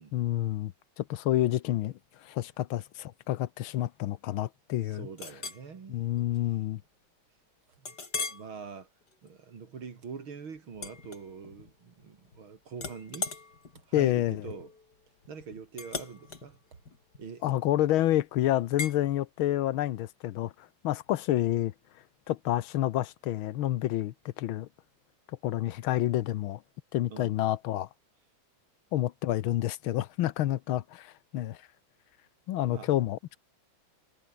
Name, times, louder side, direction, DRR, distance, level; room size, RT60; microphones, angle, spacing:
voice 1, 0.1-5.1 5.9-6.8 13.9-14.4 17.4-21.7 22.3-24.7 25.4-26.6 26.9-27.9 28.9-31.6 32.5-33.4, left 13 dB, 90° left, 1.7 m, -29 dB
voice 2, 4.9-6.0 7.8-8.0 8.3-8.9 9.2-13.3 13.9-14.7 15.3-16.6 17.2-17.5 27.1-27.4 32.7-32.9, right 5 dB, 85° right, 3.6 m, -44 dB
Chink clink, 5.2-5.7 6.2-6.4 6.8-6.9 7.8-8.5 9.0-9.3 10.7-11.7 12.0-12.4 12.7-17.9 18.8-19.0, left 4 dB, 55° left, 3.8 m, -39 dB
omnidirectional pair, 2.2 m